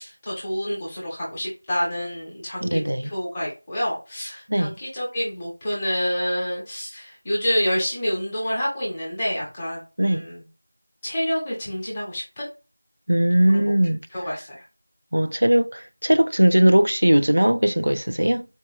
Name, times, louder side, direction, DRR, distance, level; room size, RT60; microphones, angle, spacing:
voice 1, 0.0-10.4 11.0-12.5 13.5-13.6 14.1-14.6, equal, 5° left, 0.8 m, -28 dB
voice 2, 2.6-3.1 4.5-4.8 10.0-10.2 13.1-14.0 15.1-18.5, right 1 dB, 85° right, 0.4 m, -19 dB
4.2 x 2.2 x 3.5 m
figure-of-eight pair, 180°, 0 cm